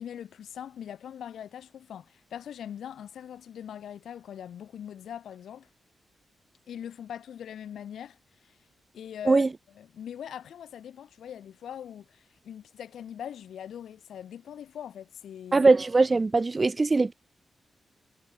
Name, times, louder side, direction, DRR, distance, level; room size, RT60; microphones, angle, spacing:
voice 1, 0.0-5.7 6.7-8.6 8.9-9.4 9.8-15.7, left 9 dB, 90° left, 2.3 m, -41 dB
voice 2, 15.5-17.1, right 3 dB, 25° right, 0.4 m, -21 dB
wide cardioid pair, 120°, 0 cm